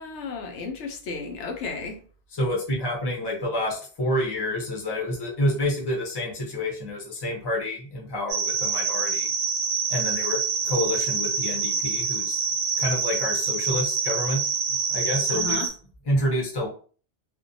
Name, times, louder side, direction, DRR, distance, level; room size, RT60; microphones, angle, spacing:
voice 1, 0.0-2.0 15.3-15.7, left 4 dB, 80° left, 0.9 m, -33 dB
voice 2, 2.4-9.3 9.9-12.4 12.8-14.4 14.9-15.6 16.1-16.7, left 1 dB, 25° left, 0.6 m, -28 dB
sound 1, 8.3-15.7, right 5 dB, 85° right, 1.0 m, -26 dB
2.5 x 2.1 x 2.6 m
omnidirectional pair, 1.2 m